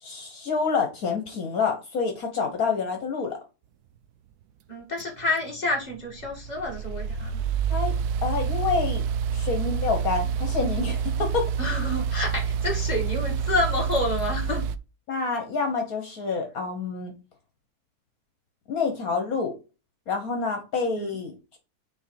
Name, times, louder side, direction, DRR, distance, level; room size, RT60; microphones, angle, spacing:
voice 1, 0.0-3.4 7.7-7.9 8.2-9.0 9.3-11.5 15.1-17.1 18.7-19.5 20.1-21.6, left 5 dB, 65° left, 4 dB, 1.7 m, -27 dB
voice 2, 4.7-7.4 11.6-14.6 21.0-21.1, left 2 dB, 25° left, -1 dB, 2.4 m, -28 dB
sound 1, 5.0-14.8, right 7 dB, 80° right, 1.1 m, -28 dB
6.4 x 3.7 x 4.8 m, 0.30 s
omnidirectional pair, 1.6 m